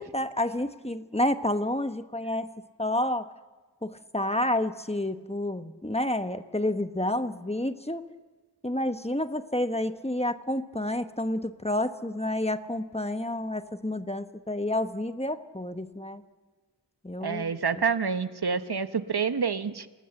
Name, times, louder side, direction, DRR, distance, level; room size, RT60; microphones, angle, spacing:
voice 1, 0.0-2.5 2.8-3.3 3.8-8.1 8.6-16.2 17.0-17.6, left 1 dB, 15° left, 9 dB, 1.1 m, -29 dB
voice 2, 17.2-19.9, right 6 dB, 60° right, 11 dB, 1.0 m, -28 dB
28.0 x 19.0 x 7.7 m, 1.3 s
wide cardioid pair, 50°, 43 cm